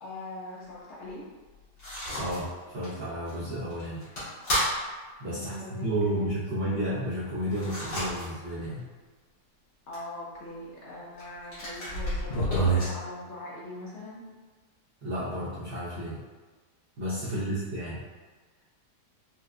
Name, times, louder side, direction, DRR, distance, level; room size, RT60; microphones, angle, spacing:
voice 1, 0.0-1.2 5.3-6.3 9.9-14.2 17.2-17.6, left 2 dB, 60° left, -5 dB, 0.7 m, -41 dB
sound 1, 1.8-2.4 2.8-2.9 3.3-3.4 3.7-4.7 7.5-8.3 8.7-8.8 9.9-10.0 11.2-11.3 11.5-12.9, right 1 dB, 90° left, 2.0 m, -29 dB
voice 2, 2.1-4.0 5.2-5.6 5.8-8.9 15.0-16.2 17.0-18.0, right 1 dB, 55° right, -10 dB, 0.7 m, -32 dB
4.3 x 2.2 x 2.4 m, 1.4 s
omnidirectional pair, 1.8 m